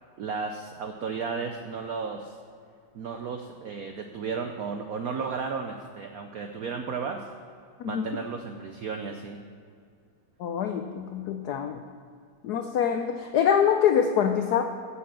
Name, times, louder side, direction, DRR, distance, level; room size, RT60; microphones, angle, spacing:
voice 1, 0.2-2.4 2.9-7.2 7.8-9.4, right 5 dB, 85° right, 5 dB, 0.8 m, -34 dB
voice 2, 10.4-11.8 12.4-14.6, left 8 dB, 85° left, 6 dB, 0.8 m, -25 dB
8.4 x 7.4 x 7.4 m, 2.3 s
omnidirectional pair, 2.3 m